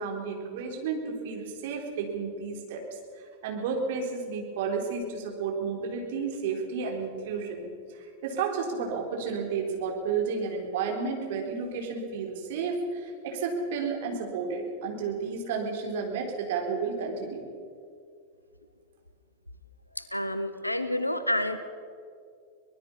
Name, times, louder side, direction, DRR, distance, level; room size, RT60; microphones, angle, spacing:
voice 1, 0.0-2.8 3.4-7.7 7.9-17.5, right 5 dB, 55° right, 2 dB, 4.1 m, -32 dB
voice 2, 19.9-21.6, left 1 dB, 85° left, 11 dB, 1.4 m, -29 dB
24.0 x 20.0 x 5.6 m, 2.3 s
figure-of-eight pair, 90°, 0 cm